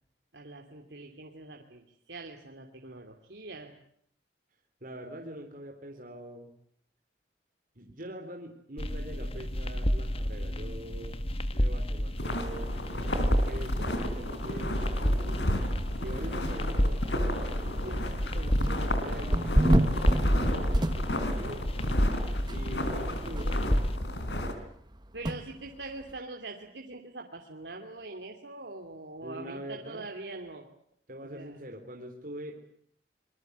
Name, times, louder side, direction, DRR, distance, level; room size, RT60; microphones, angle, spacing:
voice 1, 0.3-3.8 25.1-30.7 31.3-31.6, right 2 dB, 80° right, 2 dB, 2.8 m, -43 dB
voice 2, 4.8-6.5 7.8-11.3 11.5-13.2 13.4-15.4 16.0-17.0 17.5-21.6 22.5-24.0 29.2-30.1 31.1-32.6, right 1 dB, 50° right, 2 dB, 3.6 m, -43 dB
sound 1, 8.8-24.0, equal, 35° left, 1.6 m, -31 dB
sound 2, 12.2-24.5, left 1 dB, 85° left, 4.5 m, -33 dB
sound 3, 18.6-19.0 19.3-21.4 21.8-21.9 22.5-22.6 22.8-22.9 23.4-23.5 25.2-25.4, right 1 dB, 25° right, 1.3 m, -25 dB
26.0 x 22.5 x 8.1 m, 0.65 s
head